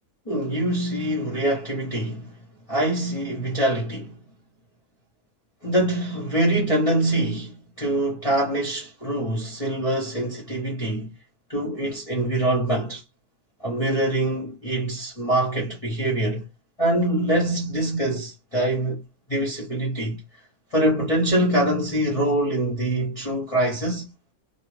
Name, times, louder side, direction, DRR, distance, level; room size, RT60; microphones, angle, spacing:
voice 1, 0.3-2.4 2.7-4.2 5.6-11.1 11.5-13.0 13.6-16.4 16.8-19.0 19.3-20.2 20.7-24.1, right 1 dB, 30° left, 0.7 m, -24 dB
2.4 x 2.3 x 3.2 m
omnidirectional pair, 1.5 m